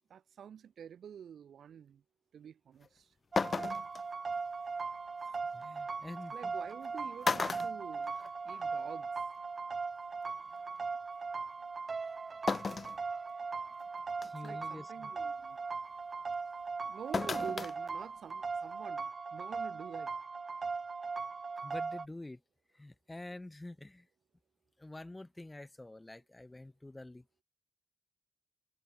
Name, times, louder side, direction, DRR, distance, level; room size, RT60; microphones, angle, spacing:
voice 1, 0.1-2.0 2.3-3.1 6.3-8.1 8.4-9.1 14.2-15.6 16.8-20.1, right 8 dB, 85° right, 5.3 m, -48 dB
sound 1, 2.8-2.9 3.4-4.0 5.6-5.7 6.7-6.9 7.2-8.6 9.0-9.1 10.3-10.4 12.5-13.0 13.5-13.6 14.2-14.5 17.1-17.7 18.1-18.2, left 4 dB, 40° left, 0.5 m, -34 dB
sound 2, 3.3-22.1, right 4 dB, 40° right, 2.3 m, -39 dB
voice 2, 5.2-6.5 14.2-15.1 21.6-22.4 22.7-24.1 24.8-27.4, left 2 dB, 15° left, 1.4 m, -48 dB
wide cardioid pair, 125°, 0 cm